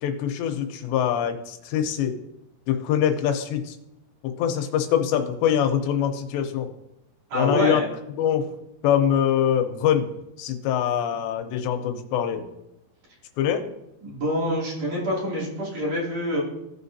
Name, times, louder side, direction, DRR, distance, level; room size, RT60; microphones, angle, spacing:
voice 1, 0.0-2.1 2.7-3.8 4.2-6.7 7.3-7.8 8.2-8.5 8.8-10.1 10.4-12.5 13.4-13.6, left 9 dB, 90° left, 6 dB, 3.1 m, -24 dB
voice 2, 7.3-7.9 14.0-16.4, equal, 45° right, -5 dB, 3.6 m, -26 dB
16.0 x 5.6 x 2.7 m, 0.85 s
omnidirectional pair, 4.9 m